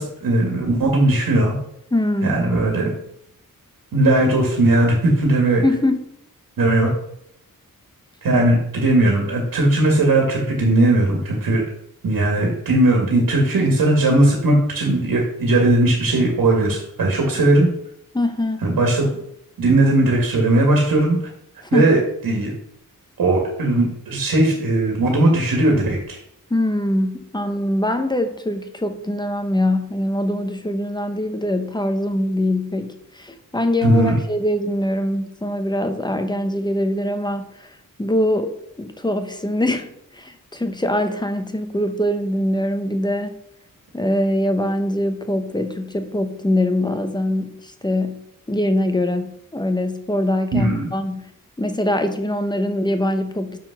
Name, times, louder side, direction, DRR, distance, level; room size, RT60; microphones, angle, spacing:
voice 1, 0.0-1.6 2.2-2.9 3.9-5.6 6.6-6.9 8.2-11.6 12.0-17.7 18.6-19.1 19.6-21.2 21.7-22.5 23.2-26.2 33.8-34.1 50.5-50.9, right 2 dB, 85° right, 0 dB, 2.0 m, -18 dB
voice 2, 1.9-2.4 5.6-6.1 8.3-8.5 18.1-18.7 21.7-21.9 26.5-43.4 43.9-51.3 51.6-53.6, left 1 dB, 15° left, 7 dB, 0.8 m, -23 dB
7.0 x 6.1 x 5.9 m, 0.74 s
wide cardioid pair, 160°, 34 cm